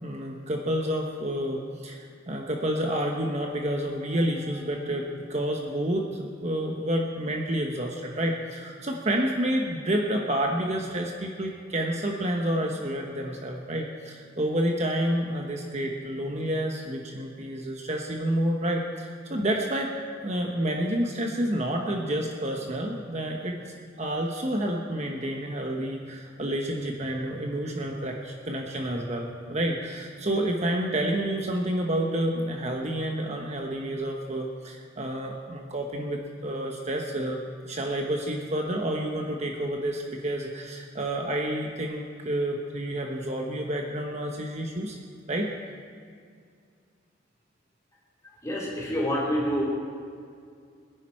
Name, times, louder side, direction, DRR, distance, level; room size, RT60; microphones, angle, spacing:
voice 1, 0.0-19.9 20.2-23.6 24.0-37.4 37.7-45.0 45.3-45.5, right 1 dB, 35° right, 1 dB, 1.1 m, -29 dB
voice 2, 48.4-49.6, equal, 15° left, -5 dB, 4.0 m, -27 dB
22.5 x 10.5 x 4.4 m, 2.2 s
head